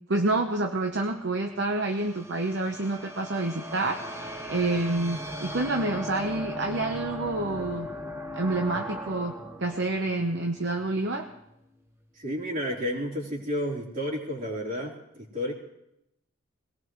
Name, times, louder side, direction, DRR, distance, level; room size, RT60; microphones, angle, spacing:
voice 1, 0.1-7.9 8.3-9.3 9.6-11.3, right 2 dB, 60° right, 4 dB, 1.0 m, -28 dB
sound 1, 0.9-11.2, equal, 15° right, 1.0 m, -39 dB
voice 2, 12.2-15.5, equal, 40° right, -3 dB, 3.8 m, -31 dB
22.5 x 18.0 x 3.2 m, 0.82 s
head